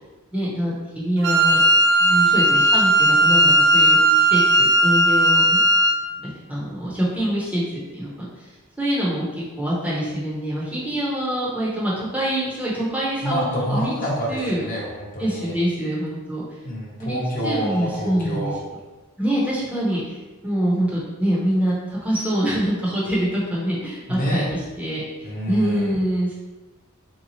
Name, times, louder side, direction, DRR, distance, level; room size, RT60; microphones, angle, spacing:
voice 1, 0.3-1.6 2.0-5.6 6.2-8.3 8.8-13.9 14.3-14.6 15.2-16.4 17.0-17.2 17.4-18.5 19.2-20.2 20.4-26.3, equal, 5° right, -7 dB, 0.6 m, -25 dB
Wind instrument woodwind instrument, 1.2-6.1, right 1 dB, 55° right, 0.3 m, -16 dB
voice 2, 13.2-15.5 16.6-18.6 24.1-24.5 25.2-26.0, equal, 40° left, -4 dB, 0.7 m, -27 dB
3.4 x 2.7 x 2.9 m, 1.2 s
head